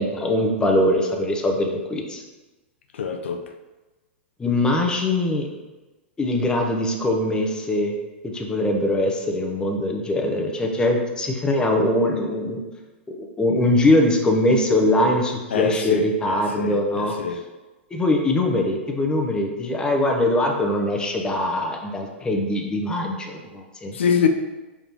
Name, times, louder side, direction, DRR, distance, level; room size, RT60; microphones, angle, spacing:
voice 1, 0.0-2.2 4.4-5.5 6.2-7.9 8.2-12.6 13.2-17.1 17.9-23.9, left 1 dB, 10° left, 2 dB, 0.7 m, -22 dB
voice 2, 2.9-3.4 15.5-16.1 16.6-17.4 23.9-24.3, left 7 dB, 70° left, 6 dB, 0.4 m, -24 dB
5.1 x 3.5 x 3.0 m, 1.1 s
hypercardioid pair, 105°, 7 cm